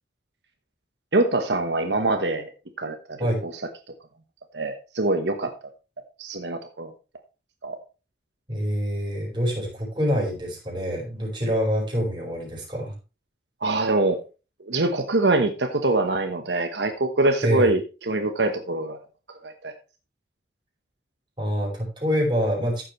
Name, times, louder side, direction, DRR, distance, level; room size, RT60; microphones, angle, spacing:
voice 1, 1.1-2.5 2.8-3.5 4.5-5.5 6.2-6.9 7.6-7.8 13.6-14.2 14.7-17.8 18.1-19.0 19.4-19.7, right 2 dB, 80° right, 6 dB, 1.2 m, -24 dB
voice 2, 8.5-12.9 17.4-17.7 21.4-22.8, equal, 25° right, -2 dB, 5.2 m, -26 dB
14.5 x 7.6 x 3.2 m, 0.32 s
head